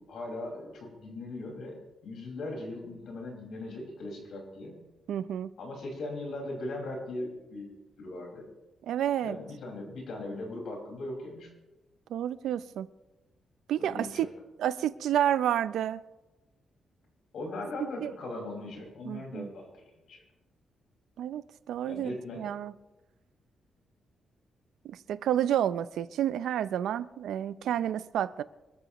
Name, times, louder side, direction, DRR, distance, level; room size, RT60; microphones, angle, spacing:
voice 1, 0.0-4.8 5.6-8.5 9.2-11.5 13.8-14.3 17.3-20.2 21.9-22.5 27.8-27.9, left 2 dB, 60° left, 5.3 m, -39 dB
voice 2, 5.1-5.5 8.8-9.4 12.1-12.9 13.7-14.3 14.6-16.0 18.0-18.1 19.1-19.5 21.2-22.7 24.8-28.4, right 10 dB, 90° right, 0.5 m, -30 dB
26.5 x 13.5 x 3.1 m
wide cardioid pair, 170°, 0 cm